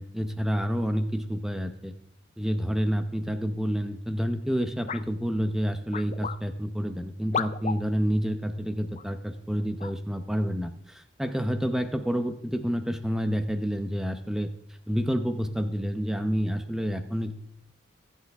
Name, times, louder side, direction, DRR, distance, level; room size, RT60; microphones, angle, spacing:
voice 1, 0.0-1.9 2.4-14.5 14.9-17.4, equal, ahead, 7 dB, 0.7 m, -29 dB
sound 1, 4.9-5.1 5.9-6.4 7.3-7.8 8.9-9.0 9.8-10.0, left 6 dB, 35° left, 0.4 m, -32 dB
22.0 x 8.3 x 3.5 m, 0.73 s
head